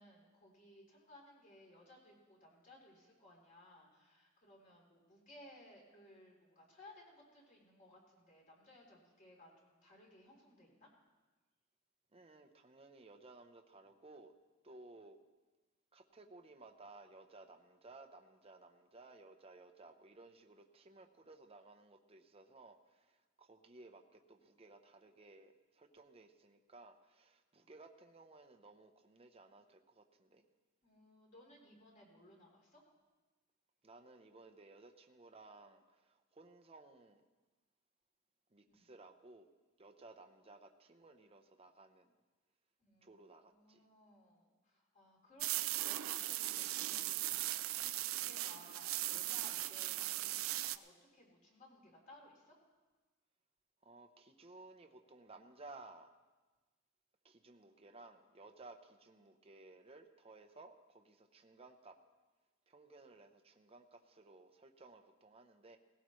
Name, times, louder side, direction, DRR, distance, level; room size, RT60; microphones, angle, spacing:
voice 1, 0.0-10.9 30.8-32.8 38.6-38.9 42.8-45.5 45.7-52.6, left 1 dB, 40° left, -2 dB, 3.5 m, -61 dB
voice 2, 12.1-14.3 14.6-15.2 15.9-30.5 33.8-37.2 38.5-39.5 39.8-42.1 43.0-43.8 53.8-56.1 57.2-62.0 62.7-65.8, right 3 dB, 30° right, 5 dB, 0.8 m, -58 dB
sound 1, 45.4-50.8, right 15 dB, 75° right, 0.4 m, -38 dB
18.0 x 17.0 x 3.2 m, 1.2 s
head